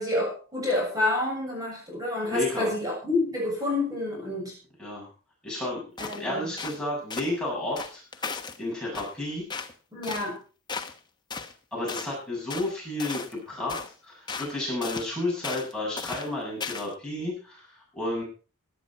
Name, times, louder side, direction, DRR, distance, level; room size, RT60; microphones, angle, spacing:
voice 1, 0.0-4.6 6.0-6.5 9.9-10.4, left 2 dB, 15° right, -2 dB, 7.1 m, -28 dB
voice 2, 2.3-2.7 4.8-5.1 5.4-8.2 8.6-9.4 11.7-18.2, left 1 dB, 5° left, -4 dB, 7.2 m, -32 dB
sound 1, 6.0-6.2 6.6-6.8 7.1-7.3 7.8-8.6 8.9-9.1 9.5-9.7 10.0-10.3 10.7-11.0 11.3-11.5 11.9-12.1 12.5-12.7 13.0-13.4 13.7-13.9 14.3-14.5 14.8-15.1 15.4-15.7 16.0-16.3 16.6-16.9, left 5 dB, 20° left, 1.1 m, -36 dB
17.0 x 11.5 x 4.5 m, 0.37 s
head